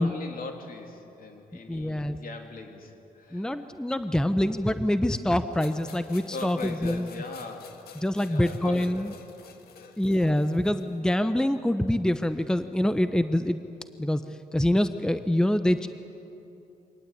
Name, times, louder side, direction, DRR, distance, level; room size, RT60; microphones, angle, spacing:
voice 1, 0.0-3.7 4.2-4.5 6.3-7.8 8.2-9.1 9.8-10.0, left 3 dB, 65° left, 3 dB, 3.0 m, -40 dB
voice 2, 1.7-2.2 3.3-7.1 8.0-9.1 10.0-13.6 14.0-14.2 14.5-15.9, left 1 dB, 5° left, 10 dB, 0.8 m, -25 dB
sound 1, 5.6-11.0, left 7 dB, 85° left, 1.7 m, -49 dB
24.5 x 18.5 x 8.6 m, 2.8 s
cardioid pair, 80°, 16 cm